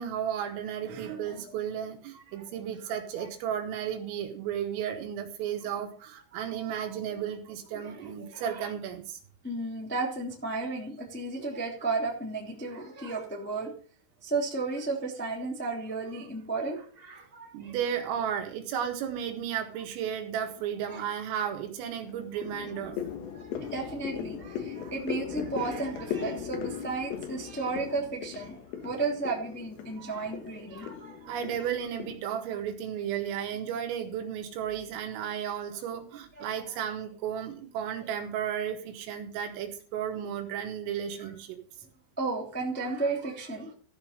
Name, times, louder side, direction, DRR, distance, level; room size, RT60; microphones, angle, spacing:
voice 1, 0.0-9.2 17.5-23.0 30.0-30.2 31.3-41.6, right 9 dB, 85° right, 4 dB, 4.3 m, -34 dB
voice 2, 7.7-8.7 9.4-13.8 14.2-17.7 20.9-21.0 23.3-31.4 36.4-36.5 41.2-41.3 42.2-43.7, right 3 dB, 5° left, -2 dB, 1.3 m, -34 dB
sound 1, 20.5-21.0 21.4-32.2, left 8 dB, 70° left, 2.5 m, -38 dB
14.5 x 5.2 x 6.6 m, 0.44 s
omnidirectional pair, 5.8 m